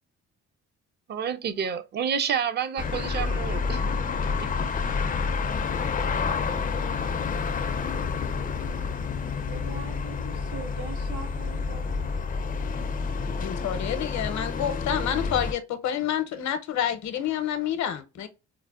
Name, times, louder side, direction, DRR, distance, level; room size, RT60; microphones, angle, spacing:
voice 1, 1.1-3.9 4.4-4.5, right 7 dB, 35° right, 0.4 m, -29 dB
sound 1, 2.8-15.5, left 5 dB, 30° left, 0.4 m, -29 dB
voice 2, 9.4-12.1, right 5 dB, 85° right, 1.4 m, -42 dB
voice 3, 13.4-18.3, left 9 dB, 70° left, 0.7 m, -28 dB
4.5 x 2.1 x 2.3 m
cardioid pair, 90°, 30 cm